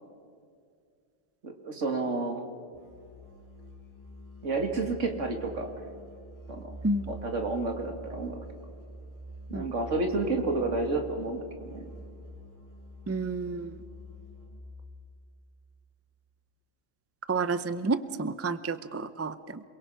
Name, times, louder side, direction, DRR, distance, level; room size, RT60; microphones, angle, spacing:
voice 1, 1.4-2.4 4.4-5.7 6.5-6.8 7.1-8.4 9.5-11.9, right 3 dB, 75° right, 4 dB, 2.6 m, -30 dB
Musical instrument, 2.7-14.8, right 1 dB, 15° left, 7.1 m, -46 dB
voice 2, 13.1-13.8 17.3-19.6, right 3 dB, 20° right, 13 dB, 0.4 m, -30 dB
27.5 x 22.5 x 5.7 m, 2.2 s
omnidirectional pair, 1.3 m